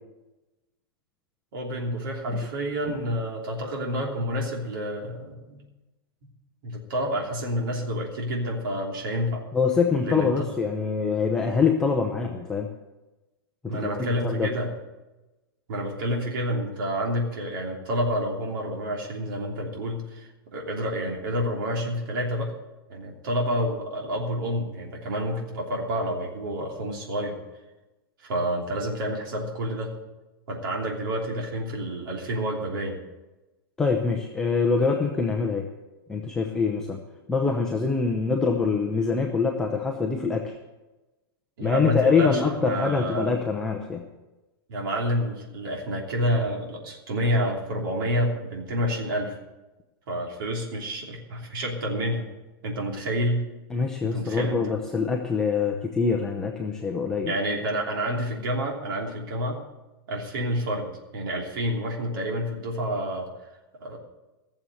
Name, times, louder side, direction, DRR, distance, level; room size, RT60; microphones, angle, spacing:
voice 1, 1.5-5.6 6.6-9.4 10.0-10.5 13.7-14.7 15.7-22.5 22.9-27.4 28.2-29.9 30.5-33.0 41.6-43.3 44.7-49.4 50.1-52.3 52.6-53.4 54.0-54.7 57.3-59.6 60.1-63.3 63.8-64.0, equal, 65° right, -1 dB, 3.2 m, -29 dB
voice 2, 9.5-12.7 13.6-13.9 14.2-14.5 33.8-35.7 36.1-37.0 37.3-40.5 41.6-44.1 53.7-57.3, left 5 dB, 5° left, 1 dB, 0.6 m, -24 dB
15.5 x 7.2 x 7.9 m, 1.1 s
supercardioid pair, 170°, 13 cm